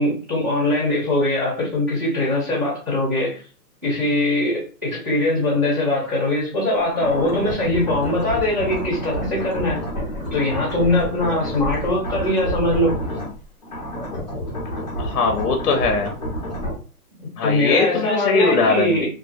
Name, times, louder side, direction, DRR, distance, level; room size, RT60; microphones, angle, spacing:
voice 1, 0.0-3.4 3.8-9.8 10.3-12.9 17.2-19.1, left 1 dB, 10° right, 0.6 m, -21 dB
sound 1, 6.9-13.4 13.6-16.8, equal, 30° left, 0.6 m, -29 dB
voice 2, 15.0-16.1 17.4-19.1, left 4 dB, 70° left, 0.6 m, -20 dB
2.3 x 2.1 x 2.5 m
hypercardioid pair, 175°, 46 cm